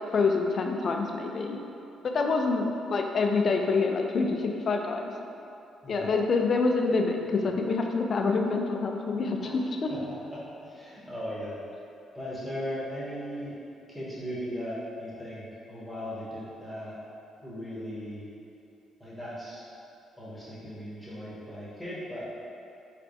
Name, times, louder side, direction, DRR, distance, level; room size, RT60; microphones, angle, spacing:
voice 1, 0.1-1.6 2.0-5.1 5.9-9.9, left 4 dB, 50° left, 3 dB, 0.4 m, -26 dB
voice 2, 5.8-6.1 9.4-9.6 9.9-10.0 10.3-11.6 12.1-13.6 13.9-17.0 17.4-18.3 19.0-19.6 20.2-22.2, equal, ahead, -9 dB, 1.3 m, -37 dB
4.2 x 3.3 x 2.7 m, 2.8 s
cardioid pair, 90°, 0 cm